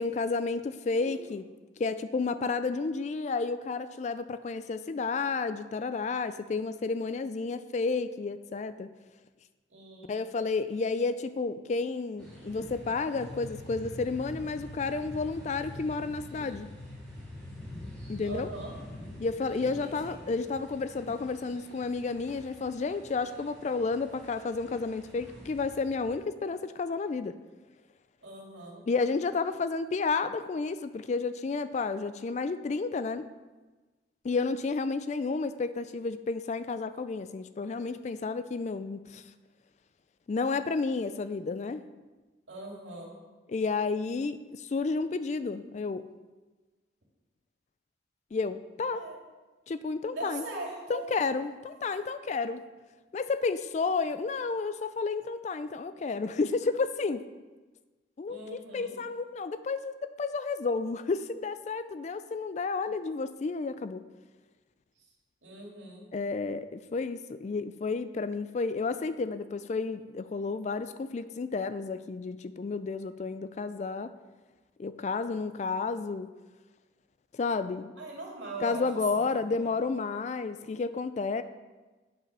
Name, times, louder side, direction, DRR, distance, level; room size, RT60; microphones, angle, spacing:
voice 1, 0.0-1.4 1.8-8.9 10.1-16.7 18.1-18.5 19.2-27.4 28.9-33.3 34.2-39.2 40.3-41.9 43.5-46.1 48.3-49.1 49.7-50.4 50.9-52.6 53.1-57.2 58.2-64.0 66.1-74.1 74.8-76.3 77.3-77.9 78.6-81.4, left 4 dB, 40° left, 12 dB, 0.3 m, -31 dB
voice 2, 9.7-10.3 18.2-18.7 19.8-20.1 28.2-28.8 42.5-43.2 48.9-49.2 50.1-51.1 58.3-58.9 65.4-66.1 78.0-78.8 79.3-79.4, right 2 dB, 75° right, -2 dB, 2.4 m, -41 dB
sound 1, 12.2-26.2, equal, 5° left, 2.4 m, -48 dB
sound 2, 13.1-19.3, left 2 dB, 90° left, 0.7 m, -45 dB
8.2 x 5.8 x 5.5 m, 1.3 s
head